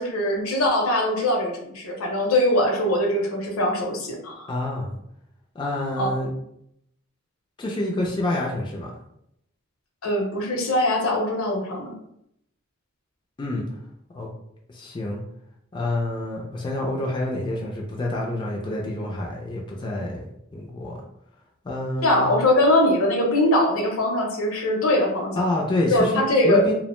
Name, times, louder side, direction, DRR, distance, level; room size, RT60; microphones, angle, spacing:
voice 1, 0.0-4.5 6.0-6.1 10.0-11.9 22.0-25.5 25.9-26.6, left 1 dB, 75° left, 1 dB, 0.6 m, -22 dB
voice 2, 4.5-4.9 5.6-6.3 7.6-8.9 13.4-13.6 14.1-14.3 14.7-15.2 15.7-20.3 20.5-21.0 21.7-22.3 25.4-26.7, left 1 dB, 20° left, -2 dB, 0.3 m, -27 dB
2.5 x 2.0 x 2.9 m, 0.76 s
head